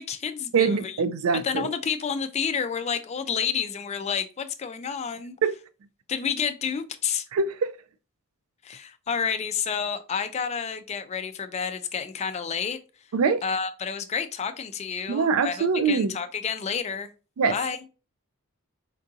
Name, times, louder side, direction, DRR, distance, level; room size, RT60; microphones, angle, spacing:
voice 1, 0.0-1.0 1.4-5.4 6.1-7.3 8.6-12.8 13.4-17.1 17.5-17.8, left 6 dB, 30° left, 0.3 m, -30 dB
voice 2, 0.5-1.7 5.4-5.6 7.3-7.7 13.1-13.4 15.1-16.2 17.4-17.6, right 5 dB, 70° right, 0.4 m, -23 dB
4.5 x 2.5 x 2.6 m
head